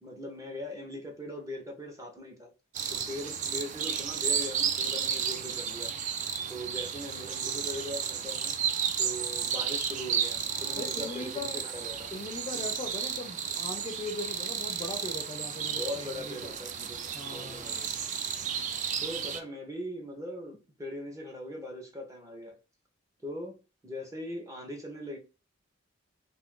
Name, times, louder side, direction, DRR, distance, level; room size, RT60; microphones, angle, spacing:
voice 1, 0.0-2.5 2.9-5.9 6.5-8.5 9.0-12.1 12.5-12.8 15.7-17.9 19.0-22.6 23.2-23.6 23.8-25.2, left 1 dB, 15° right, 0.7 m, -40 dB
sound 1, 2.7-19.4, right 7 dB, 40° right, 0.3 m, -33 dB
voice 2, 10.8-11.6 12.1-16.6 17.1-17.8, left 3 dB, 25° left, 0.4 m, -40 dB
2.5 x 2.4 x 3.6 m
head